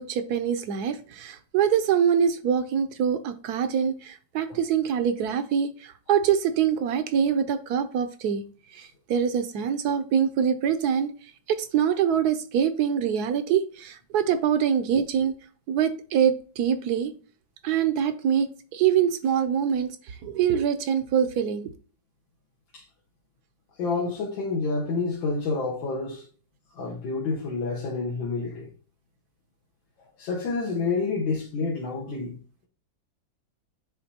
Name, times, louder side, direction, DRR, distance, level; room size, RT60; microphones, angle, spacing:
voice 1, 0.0-8.4 8.7-11.1 11.5-15.4 15.7-17.1 17.6-21.7, right 8 dB, 70° right, 1.0 m, -24 dB
voice 2, 23.8-26.3 26.8-28.7 30.2-32.4, left 4 dB, 85° left, 1.9 m, -28 dB
10.0 x 3.7 x 2.8 m
omnidirectional pair, 2.1 m